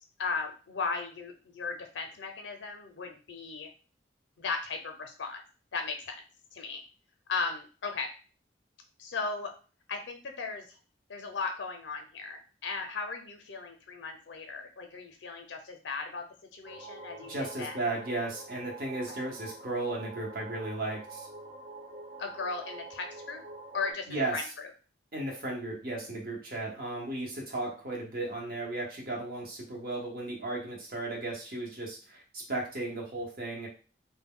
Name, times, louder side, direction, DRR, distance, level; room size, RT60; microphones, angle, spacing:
voice 1, 0.2-3.7 4.4-5.4 5.7-6.2 6.5-6.8 7.3-8.1 9.0-9.5 9.9-10.8 11.1-16.3 16.5-17.8 19.1-19.2 22.2-23.4 23.7-24.7, left 4 dB, 80° left, 4 dB, 0.5 m, -36 dB
sound 1, 16.6-23.9, right 3 dB, 30° right, 0.4 m, -46 dB
voice 2, 17.3-21.3 24.1-24.4 25.1-33.7, right 2 dB, 50° right, -2 dB, 0.9 m, -35 dB
2.2 x 2.1 x 3.6 m, 0.36 s
head